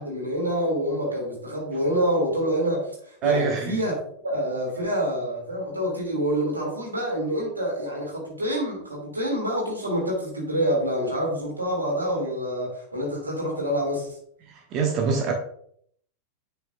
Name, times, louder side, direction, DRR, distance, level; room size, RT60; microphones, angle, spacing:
voice 1, 0.0-2.9 3.2-3.9 4.2-14.1, equal, 80° right, -1 dB, 2.8 m, -27 dB
voice 2, 3.2-3.7 14.5-15.3, right 5 dB, 35° right, 3 dB, 1.0 m, -24 dB
8.7 x 5.8 x 2.5 m, 0.64 s
figure-of-eight pair, 90°, 0 cm